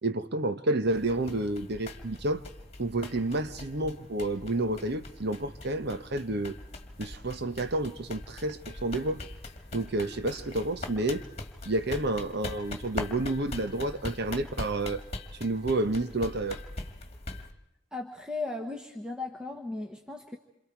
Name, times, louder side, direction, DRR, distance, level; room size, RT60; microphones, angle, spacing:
voice 1, 0.0-2.4 2.8-6.6 7.0-9.2 9.7-11.3 11.6-15.0 15.4-16.6, right 2 dB, 55° right, 1.1 m, -30 dB
sound 1, 0.9-17.5, left 2 dB, 35° left, 2.0 m, -42 dB
voice 2, 17.9-20.4, left 3 dB, 5° right, 1.2 m, -36 dB
28.0 x 27.5 x 4.7 m
head